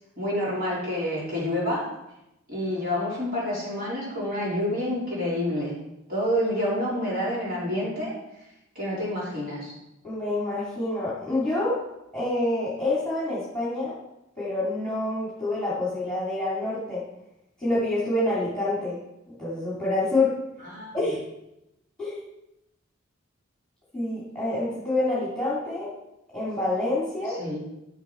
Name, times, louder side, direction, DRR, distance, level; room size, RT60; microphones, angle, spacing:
voice 1, 0.2-1.8 2.5-5.7 6.1-8.1 8.4-8.5 8.8-9.7 20.6-21.0 27.4-27.6, left 1 dB, 45° right, -7 dB, 3.8 m, -28 dB
voice 2, 10.0-11.8 12.1-13.9 14.3-17.0 17.6-19.0 19.3-20.3 20.9-21.2 22.0-22.2 23.9-25.9 26.3-27.4, left 2 dB, 5° left, -9 dB, 3.2 m, -27 dB
12.0 x 6.5 x 4.7 m, 0.89 s
head